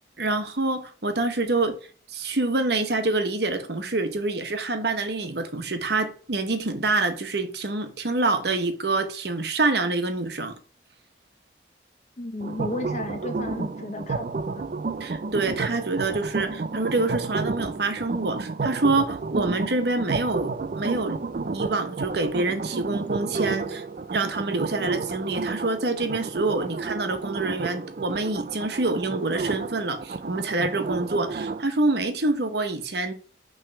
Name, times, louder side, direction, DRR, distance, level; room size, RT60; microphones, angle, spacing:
voice 1, 0.2-1.8 2.1-10.5 15.0-21.2 21.5-23.8 24.1-33.1, right 2 dB, 60° right, 1.0 m, -26 dB
voice 2, 12.2-14.6, left 1 dB, 40° left, 1.0 m, -33 dB
sound 1, 12.4-31.6, right 4 dB, 45° right, 0.4 m, -31 dB
5.9 x 3.3 x 5.8 m
head